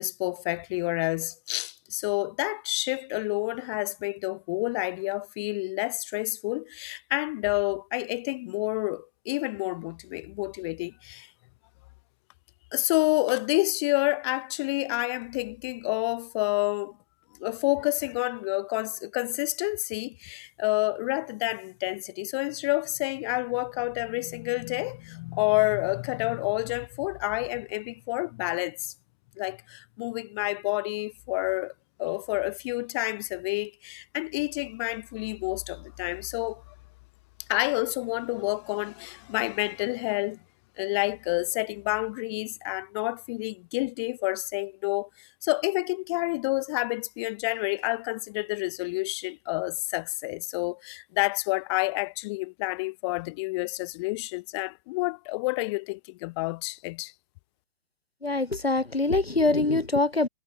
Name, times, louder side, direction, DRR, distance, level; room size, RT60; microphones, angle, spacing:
voice 1, 0.0-11.3 12.7-16.9 17.4-28.9 29.4-31.7 32.0-36.6 37.5-40.4 40.8-57.1, left 25 dB, 30° left, 1.5 m, -29 dB
voice 2, 58.2-60.3, left 2 dB, 90° left, 3.0 m, -24 dB
figure-of-eight pair, 130°, 30 cm